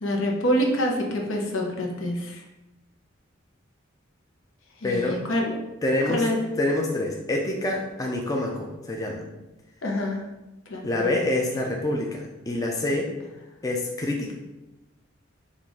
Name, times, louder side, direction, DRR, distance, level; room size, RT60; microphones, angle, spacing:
voice 1, 0.0-2.4 4.8-5.6 6.1-6.4 9.8-10.2 10.7-11.1, equal, 75° left, 0 dB, 0.9 m, -26 dB
voice 2, 4.8-5.2 5.8-6.2 6.6-9.2 10.8-13.1 13.6-14.3, left 1 dB, 15° left, 0 dB, 0.4 m, -26 dB
5.7 x 2.5 x 3.5 m, 0.99 s
head